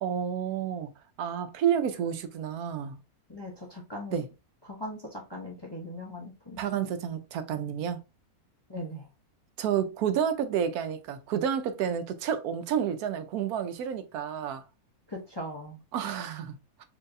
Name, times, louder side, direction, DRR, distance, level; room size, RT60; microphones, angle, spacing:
voice 1, 0.0-0.9 1.2-3.0 4.1-4.3 6.6-8.0 9.6-14.6 15.9-16.8, right 8 dB, 80° right, 1.1 m, -30 dB
voice 2, 3.3-4.2 4.6-6.9 8.7-9.1 15.1-15.8, left 1 dB, 25° left, 0.6 m, -40 dB
4.6 x 2.7 x 2.5 m
omnidirectional pair, 1.6 m